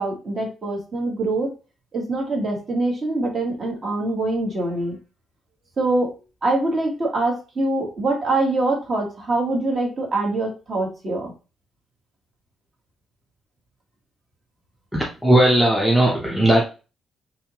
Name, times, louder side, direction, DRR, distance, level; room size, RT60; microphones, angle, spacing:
voice 1, 0.0-1.5 1.9-5.0 5.8-6.1 6.4-11.3, right 2 dB, 30° right, 0 dB, 1.3 m, -24 dB
voice 2, 14.9-16.6, right 1 dB, ahead, -3 dB, 0.7 m, -17 dB
5.4 x 2.7 x 2.9 m, 0.32 s
cardioid pair, 175°, 0 cm